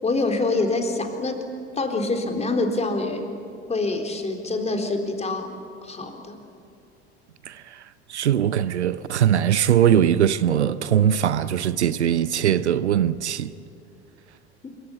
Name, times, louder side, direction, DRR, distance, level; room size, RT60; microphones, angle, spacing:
voice 1, 0.0-1.4 1.8-3.3 3.7-5.5 5.8-6.4 14.6-14.7, left 2 dB, 20° left, 3.9 m, -25 dB
voice 2, 8.1-13.5, right 10 dB, 80° right, 0.8 m, -21 dB
26.5 x 24.0 x 8.9 m
figure-of-eight pair, 70°, 34 cm